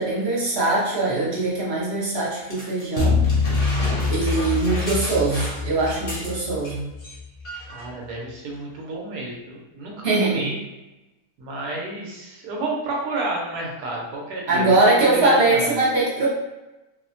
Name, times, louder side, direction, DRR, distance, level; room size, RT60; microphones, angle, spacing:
voice 1, 0.0-3.2 4.1-6.9 10.0-10.5 14.5-16.3, right 2 dB, 50° right, -6 dB, 0.8 m, -21 dB
sound 1, 2.5-6.7 7.0-7.2 7.4-7.9 8.6-8.7, equal, 40° left, 0.8 m, -34 dB
sound 2, 3.0-7.4, left 4 dB, 65° left, 0.9 m, -24 dB
voice 2, 7.7-10.6 11.4-15.7, right 2 dB, 90° right, -2 dB, 1.3 m, -30 dB
3.0 x 2.1 x 2.5 m, 1.0 s
omnidirectional pair, 1.6 m